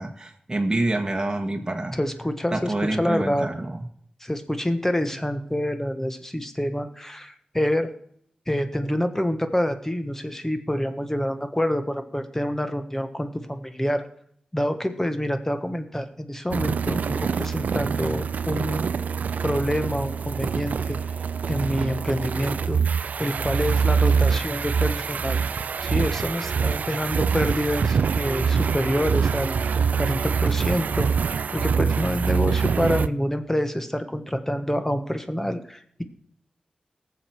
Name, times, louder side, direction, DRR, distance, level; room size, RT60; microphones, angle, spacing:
voice 1, 0.0-1.9 2.5-3.9, right 2 dB, 25° right, 2 dB, 1.6 m, -27 dB
voice 2, 1.9-3.5 4.2-7.9 8.5-14.0 14.5-18.9 19.4-21.0 21.5-22.8 23.2-25.4 25.8-31.1 31.5-36.0, equal, 15° left, 8 dB, 1.4 m, -27 dB
sound 1, 16.5-33.1, right 6 dB, 85° right, 0.4 m, -25 dB
18.0 x 7.4 x 4.8 m, 0.66 s
cardioid pair, 50°, 3 cm